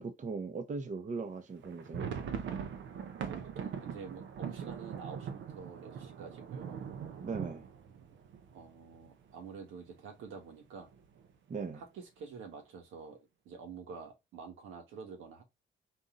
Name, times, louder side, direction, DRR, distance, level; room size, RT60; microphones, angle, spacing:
voice 1, 0.0-2.1 7.2-7.6 11.5-11.8, right 4 dB, 40° right, 0.9 m, -39 dB
sound 1, 1.6-9.3 9.6-9.7 10.0-10.2 10.8-11.3, right 7 dB, 70° right, 0.8 m, -42 dB
voice 2, 3.2-6.9 7.9-8.0 8.5-10.9 11.7-15.4, right 5 dB, 90° right, 1.7 m, -48 dB
4.1 x 2.7 x 3.8 m
cardioid pair, 90°, 20 cm